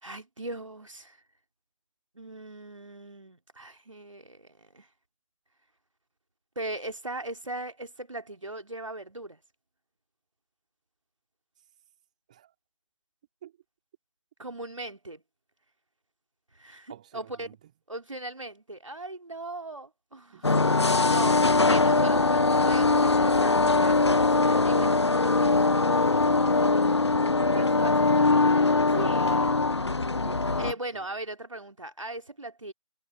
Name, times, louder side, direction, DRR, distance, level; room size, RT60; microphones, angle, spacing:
voice 1, 0.0-1.2 2.1-4.9 6.6-9.4 14.4-15.2 16.5-17.6 17.9-20.5 21.0-25.5 27.1-27.9 28.9-29.5 30.6-32.7, right 2 dB, 65° right, 2.6 m, -39 dB
voice 2, 16.9-17.7 20.3-21.6 21.9-22.4 27.4-28.5 30.1-31.2, right 11 dB, 15° right, 2.7 m, -50 dB
sound 1, 20.4-30.7, left 3 dB, 50° left, 0.8 m, -22 dB
figure-of-eight pair, 160°, 17 cm